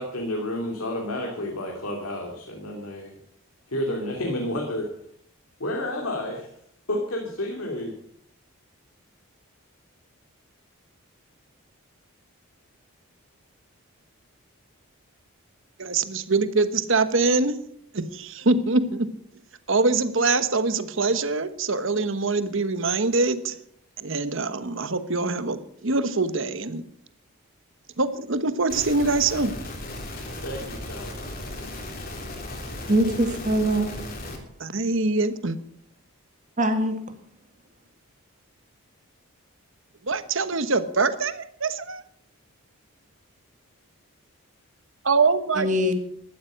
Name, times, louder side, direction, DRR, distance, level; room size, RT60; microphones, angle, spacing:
voice 1, 0.0-3.1 3.7-4.9 5.6-6.5 6.9-8.0 30.4-31.2 32.9-33.4, left 1 dB, 75° left, 1 dB, 2.8 m, -31 dB
voice 2, 15.8-17.5 17.9-19.1 19.7-23.6 24.0-26.9 28.0-29.5 34.6-35.6 40.0-42.0 45.0-45.7, right 3 dB, 60° right, 12 dB, 1.1 m, -24 dB
sound 1, 28.7-34.4, left 1 dB, 40° left, 3.4 m, -36 dB
voice 3, 32.9-33.9 36.6-37.0 45.6-45.9, right 1 dB, 35° right, 6 dB, 2.1 m, -22 dB
14.0 x 12.5 x 6.4 m, 0.67 s
head